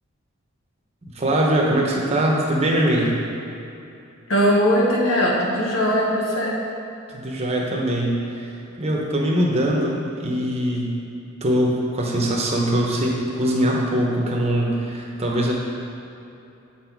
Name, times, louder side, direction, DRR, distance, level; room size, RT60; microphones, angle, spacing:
voice 1, 1.1-3.2 7.1-8.5 8.8-11.0 11.4-15.5, right 1 dB, 30° right, -2 dB, 0.9 m, -22 dB
voice 2, 4.3-6.6, equal, 70° left, -4 dB, 1.1 m, -20 dB
7.7 x 4.0 x 4.5 m, 2.8 s
head